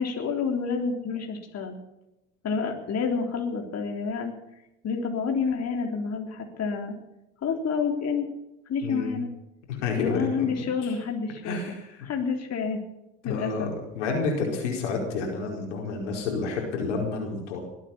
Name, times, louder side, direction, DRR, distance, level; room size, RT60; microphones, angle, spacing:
voice 1, 0.0-1.8 2.4-4.3 4.8-7.0 7.4-8.3 8.7-9.3 10.0-11.8 12.0-12.8 13.2-13.7, left 5 dB, 45° left, 2 dB, 3.6 m, -29 dB
voice 2, 8.8-9.2 9.7-10.5 10.8-10.9 11.4-12.0 13.2-13.7 13.9-17.6, left 4 dB, 90° left, 1 dB, 4.7 m, -29 dB
21.5 x 9.1 x 7.2 m, 0.90 s
hypercardioid pair, 70°, 35 cm